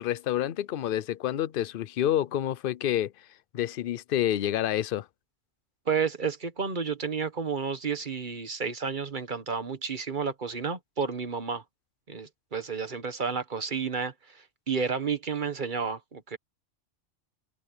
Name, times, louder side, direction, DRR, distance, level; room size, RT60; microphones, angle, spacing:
voice 1, 0.0-3.3 3.5-5.1, left 11 dB, 55° left, 0.7 m, -28 dB
voice 2, 5.9-11.6 12.1-14.1 14.7-16.4, right 5 dB, 40° right, 1.5 m, -31 dB
omnidirectional pair, 1.2 m